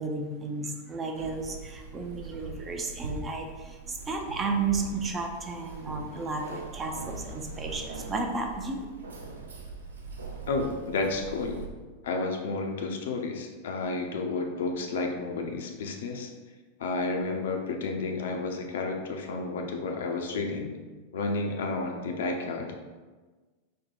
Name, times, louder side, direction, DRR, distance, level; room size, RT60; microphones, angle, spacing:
voice 1, 0.0-8.9, right 3 dB, 20° right, 3 dB, 0.5 m, -33 dB
Keys jangling, 1.2-11.7, right 3 dB, 70° right, 0.5 m, -42 dB
voice 2, 10.5-11.6 12.0-16.3 16.8-20.7 21.1-22.7, left 3 dB, 60° left, 2 dB, 0.5 m, -31 dB
4.3 x 2.2 x 4.3 m, 1.3 s
figure-of-eight pair, 90°, 0 cm